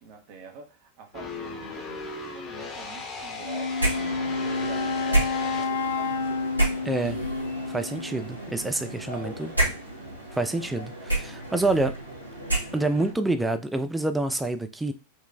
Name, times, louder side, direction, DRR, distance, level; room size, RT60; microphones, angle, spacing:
voice 1, 0.0-5.4, right 4 dB, 45° right, 0.6 m, -46 dB
sound 1, 1.1-5.6, left 3 dB, 30° left, 0.9 m, -37 dB
Wind instrument woodwind instrument, 3.4-8.3, left 4 dB, 60° left, 0.4 m, -30 dB
sound 2, 3.8-13.1, right 1 dB, 85° right, 0.9 m, -31 dB
voice 2, 6.8-7.2 7.7-9.5 10.3-12.0 12.7-14.9, right 2 dB, 5° right, 0.3 m, -27 dB
3.9 x 2.2 x 2.4 m
figure-of-eight pair, 90°, 0 cm